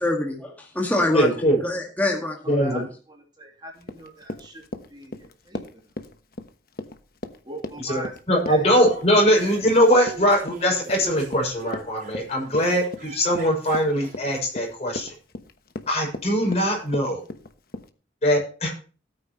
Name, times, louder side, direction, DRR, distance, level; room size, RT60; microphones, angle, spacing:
voice 1, 0.0-1.3 1.6-2.7, left 1 dB, 10° left, 0 dB, 1.9 m, -25 dB
voice 2, 1.1-1.6 2.5-2.9 7.8-15.2 15.9-17.2 18.2-18.7, equal, 35° left, 0 dB, 6.1 m, -21 dB
voice 3, 3.1-4.6 4.9-5.9 7.4-8.1 8.5-8.6, right 1 dB, 25° right, 0 dB, 3.0 m, -40 dB
Run, 3.8-17.9, left 1 dB, 50° left, 1.1 m, -37 dB
sound 1, 8.7-14.4, right 1 dB, 45° right, 4.5 m, -42 dB
17.0 x 9.3 x 3.1 m, 0.37 s
head